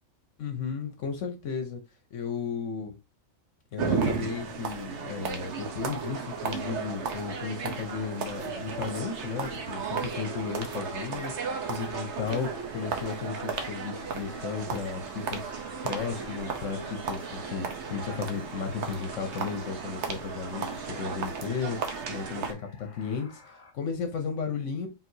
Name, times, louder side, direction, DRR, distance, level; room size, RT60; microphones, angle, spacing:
voice 1, 0.4-1.8 2.1-2.9 3.7-24.9, left 6 dB, 70° left, 1.1 m, -34 dB
sound 1, 3.8-22.5, right 5 dB, 60° right, 1.1 m, -34 dB
sound 2, 8.7-23.7, left 3 dB, 40° left, 0.9 m, -54 dB
Chime, 12.6-20.2, right 3 dB, 40° right, 1.2 m, -50 dB
4.5 x 3.7 x 2.7 m
omnidirectional pair, 1.4 m